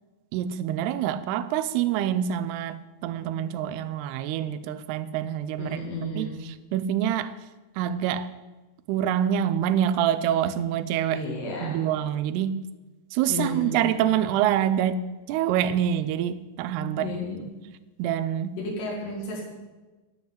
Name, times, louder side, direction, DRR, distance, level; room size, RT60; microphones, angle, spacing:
voice 1, 0.3-5.8 6.2-6.3 6.7-7.4 7.8-8.3 8.9-11.2 11.6-12.6 13.1-15.0 15.3-17.1 18.0-18.6, right 10 dB, 85° right, 12 dB, 2.7 m, -26 dB
voice 2, 5.6-6.4 11.1-11.9 13.3-13.8 17.0-17.4 18.6-19.4, left 2 dB, 85° left, -3 dB, 4.5 m, -32 dB
11.0 x 7.3 x 9.3 m, 1.2 s
omnidirectional pair, 4.6 m